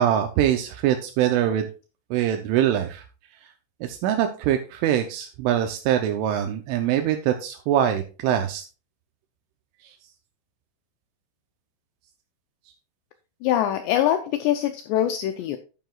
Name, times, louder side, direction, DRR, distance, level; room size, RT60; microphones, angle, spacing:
voice 1, 0.0-1.7 2.1-3.0 3.8-8.6 9.8-9.9, right 10 dB, 85° right, 5 dB, 3.2 m, -23 dB
voice 2, 13.4-15.6, left 11 dB, 90° left, 7 dB, 2.4 m, -23 dB
11.0 x 9.2 x 2.4 m, 0.35 s
omnidirectional pair, 5.6 m